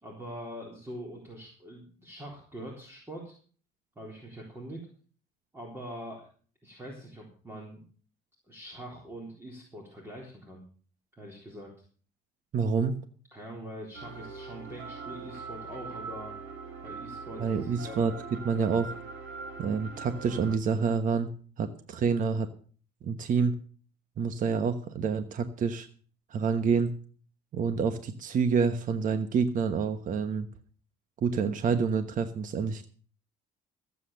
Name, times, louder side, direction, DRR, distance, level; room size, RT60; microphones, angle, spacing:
voice 1, 0.0-3.3 4.0-4.9 5.5-6.3 6.6-7.8 8.5-10.6 11.1-11.7 13.3-16.4 16.8-18.0, equal, 15° right, -1 dB, 3.9 m, -43 dB
voice 2, 12.5-12.9 17.4-18.1 18.4-18.9 19.6-21.3 21.6-22.5 23.0-23.5 24.2-25.9 26.3-26.9 27.5-30.5 31.2-32.9, right 5 dB, 50° right, 9 dB, 1.2 m, -27 dB
sound 1, 13.9-20.6, right 4 dB, 85° right, 4.7 m, -42 dB
14.5 x 8.4 x 6.7 m, 0.43 s
cardioid pair, 110°, 17 cm